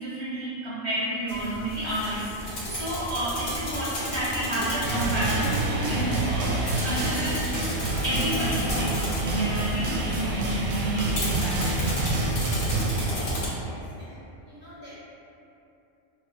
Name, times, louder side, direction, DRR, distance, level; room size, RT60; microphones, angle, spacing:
voice 1, 0.0-6.5 6.8-7.4 8.0-11.9, right 1 dB, 40° left, -10 dB, 0.4 m, -30 dB
sound 1, 1.3-13.5, left 1 dB, 70° left, 1.1 m, -33 dB
sound 2, 4.8-13.1, right 2 dB, 85° right, 1.0 m, -27 dB
voice 2, 13.6-14.9, left 1 dB, 50° right, -9 dB, 0.5 m, -48 dB
5.1 x 2.1 x 2.4 m, 2.8 s
omnidirectional pair, 1.3 m